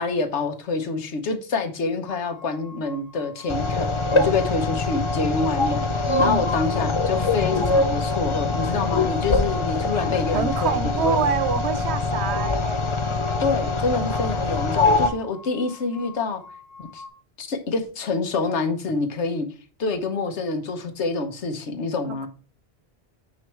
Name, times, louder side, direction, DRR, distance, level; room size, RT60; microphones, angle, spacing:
voice 1, 0.0-11.2 13.4-16.4 16.8-17.0 17.4-19.5 19.8-22.3, left 4 dB, 85° left, 1.3 m, -27 dB
sound 1, 2.0-17.1, left 4 dB, 70° left, 1.4 m, -45 dB
sound 2, 3.5-15.1, left 3 dB, 35° left, 0.5 m, -23 dB
voice 2, 6.1-6.4 10.3-12.8 22.0-22.3, right 8 dB, 70° right, 0.9 m, -26 dB
9.2 x 3.2 x 4.4 m
omnidirectional pair, 1.1 m